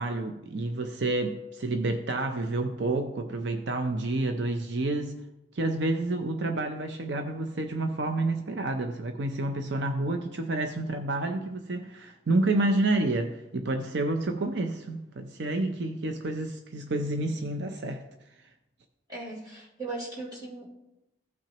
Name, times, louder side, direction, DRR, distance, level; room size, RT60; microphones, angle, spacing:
voice 1, 0.0-5.2 5.5-18.1, right 2 dB, 70° right, 6 dB, 0.6 m, -29 dB
voice 2, 19.1-20.7, right 2 dB, 20° right, -7 dB, 3.7 m, -38 dB
15.5 x 6.0 x 2.9 m, 0.94 s
head